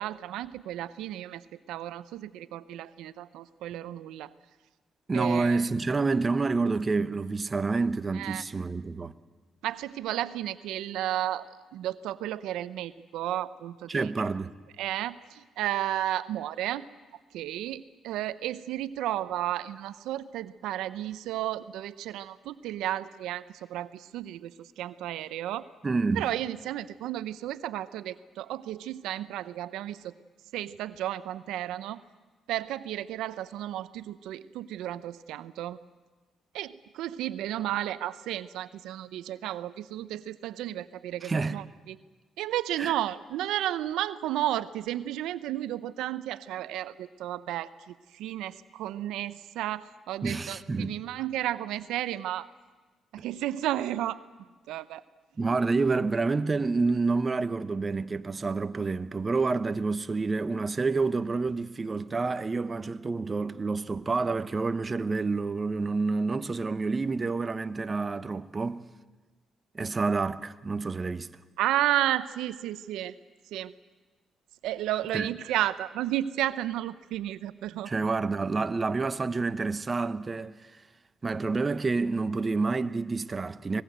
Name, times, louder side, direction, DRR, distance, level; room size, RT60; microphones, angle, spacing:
voice 1, 0.0-4.3 5.1-5.7 8.1-8.4 9.6-11.5 11.7-14.1 14.8-16.9 17.3-25.7 26.1-30.1 30.5-32.0 32.5-35.8 36.5-42.0 42.4-52.5 53.1-54.2 54.7-55.0 55.5-55.6 71.6-73.2 73.5-73.7 74.6-77.9, right 13 dB, 90° right, 0.7 m, -33 dB
voice 2, 5.1-9.1 13.9-14.5 25.8-26.3 41.2-41.6 42.8-42.9 50.2-51.0 53.2-53.3 55.4-68.9 69.7-71.3 75.1-75.3 77.8-80.5 81.2-83.8, right 3 dB, 30° right, 0.9 m, -28 dB
24.5 x 20.0 x 7.9 m
cardioid pair, 90°, 0 cm